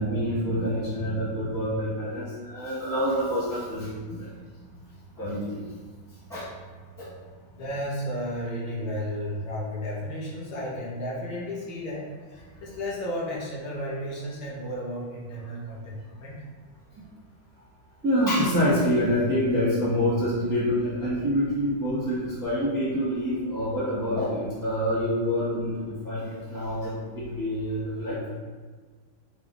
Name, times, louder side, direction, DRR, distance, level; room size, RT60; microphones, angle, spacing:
voice 1, 0.0-4.3 5.1-5.6 6.3-6.5 7.0-7.1 17.0-17.1 18.0-28.2, equal, 20° right, -9 dB, 0.6 m, -26 dB
voice 2, 7.5-16.4, equal, 65° left, -5 dB, 1.6 m, -33 dB
4.9 x 2.6 x 3.0 m, 1.5 s
omnidirectional pair, 2.2 m